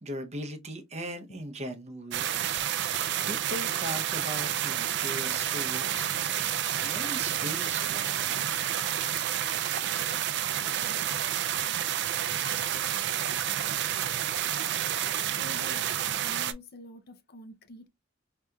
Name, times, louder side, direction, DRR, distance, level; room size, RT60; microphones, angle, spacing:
voice 1, 0.0-6.0 6.5-8.7, equal, 35° right, 0.7 m, -40 dB
sound 1, 2.1-16.5, right 10 dB, 60° right, 0.4 m, -29 dB
voice 2, 13.0-13.5 15.0-15.9 16.2-17.9, left 2 dB, 55° left, 0.6 m, -47 dB
4.8 x 2.8 x 2.3 m
head